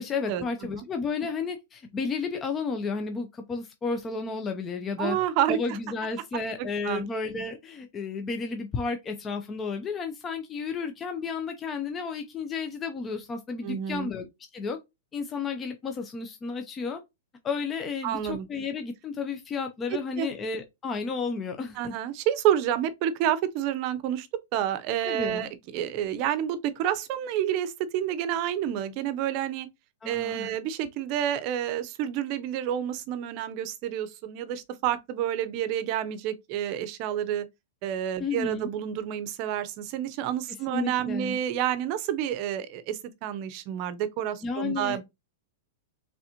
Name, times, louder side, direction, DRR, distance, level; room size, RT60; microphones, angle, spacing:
voice 1, 0.0-5.2 5.5-14.8 15.1-17.0 17.4-21.9 25.0-25.4 30.0-30.5 38.2-38.7 40.7-41.4 44.4-45.0, left 4 dB, 20° left, 0.5 m, -32 dB
voice 2, 5.0-5.8 6.6-7.0 13.6-14.1 18.0-18.5 20.2-20.3 21.8-24.3 24.5-29.7 30.0-37.5 37.8-45.0, right 10 dB, 40° right, 0.7 m, -29 dB
4.0 x 3.4 x 2.9 m
hypercardioid pair, 145°, 0 cm